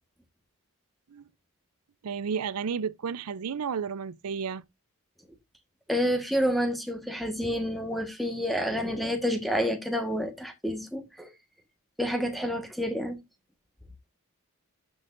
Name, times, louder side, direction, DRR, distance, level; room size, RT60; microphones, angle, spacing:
voice 1, 2.0-4.6, right 6 dB, 85° right, 0.5 m, -32 dB
voice 2, 5.9-11.3 12.0-13.2, equal, ahead, 1.3 m, -29 dB
12.0 x 6.2 x 2.5 m
head